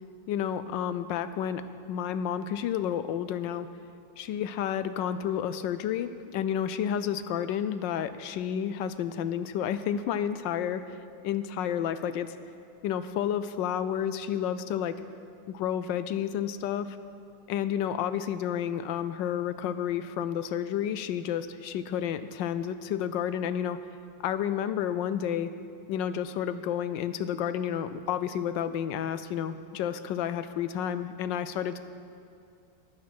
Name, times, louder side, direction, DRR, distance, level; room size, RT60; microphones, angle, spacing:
voice 1, 0.3-1.6 1.9-3.7 4.2-11.0 11.2-12.3 12.8-15.0 15.5-17.0 17.5-23.8 24.2-25.5 25.9-31.8, left 9 dB, 80° left, 12 dB, 1.2 m, -30 dB
15.5 x 9.6 x 5.9 m, 2.5 s
omnidirectional pair, 2.0 m